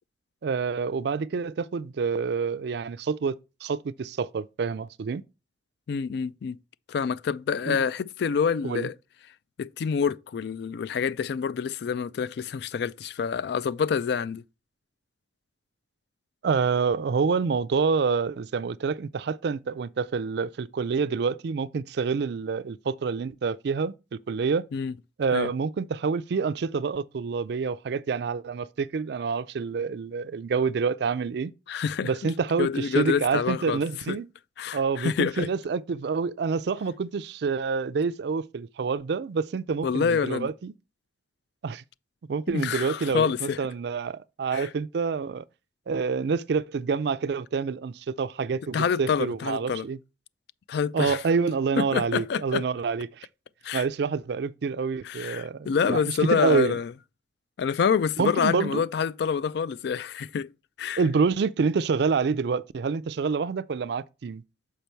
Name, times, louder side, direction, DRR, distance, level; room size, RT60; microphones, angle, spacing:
voice 1, 0.4-3.3 3.6-5.2 7.7-7.8 8.6-8.9 16.4-24.7 25.2-31.5 32.0-34.3 34.7-40.7 41.6-41.8 42.3-45.5 45.9-50.0 50.9-53.3 53.7-56.7 58.2-58.8 61.0-64.4, right 5 dB, 65° right, 0.4 m, -27 dB
voice 2, 5.9-6.6 6.9-8.9 9.6-14.4 24.7-24.9 25.3-25.5 31.7-32.1 32.6-33.8 34.1-34.2 34.6-35.5 39.8-40.5 42.5-43.6 44.5-44.7 48.7-49.9 50.7-51.2 51.8-52.6 53.6-53.8 55.0-56.9 57.6-60.5 60.8-61.0, left 6 dB, 65° left, 0.3 m, -27 dB
6.8 x 5.2 x 4.4 m
head